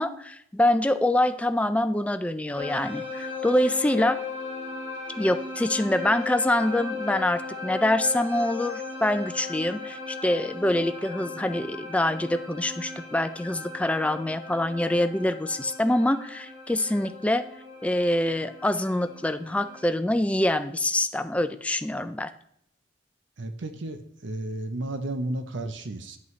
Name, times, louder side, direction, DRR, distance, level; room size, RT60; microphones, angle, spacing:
voice 1, 0.0-4.2 5.2-17.5 17.8-22.3, left 1 dB, 5° left, 9 dB, 0.3 m, -25 dB
sound 1, 2.6-20.0, left 4 dB, 25° right, 1.4 m, -37 dB
voice 2, 23.4-26.2, right 2 dB, 65° right, 8 dB, 0.7 m, -33 dB
9.4 x 8.1 x 3.2 m, 0.71 s
head